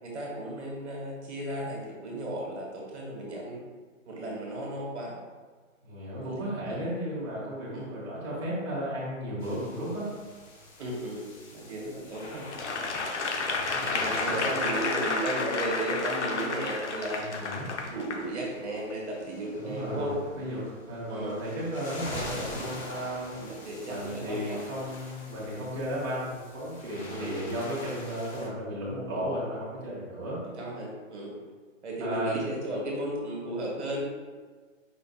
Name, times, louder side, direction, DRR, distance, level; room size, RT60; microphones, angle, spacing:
voice 1, 0.0-3.6 4.0-5.2 6.2-6.8 7.7-7.9 10.8-12.5 13.8-17.3 17.9-20.2 21.1-21.4 23.3-24.6 27.1-27.4 30.5-31.4 31.8-34.0, right 1 dB, 55° right, -3 dB, 1.4 m, -35 dB
voice 2, 5.8-10.1 13.5-14.8 17.2-17.9 19.5-23.3 23.8-30.4 32.0-32.4, equal, 20° right, -11 dB, 1.1 m, -34 dB
sound 1, 9.4-28.5, left 1 dB, 85° left, 1.4 m, -44 dB
Applause / Crowd, 12.5-18.2 18.8-18.9, left 3 dB, 60° left, 0.6 m, -31 dB
5.1 x 4.3 x 2.3 m, 1.4 s
hypercardioid pair, 180°, 40 cm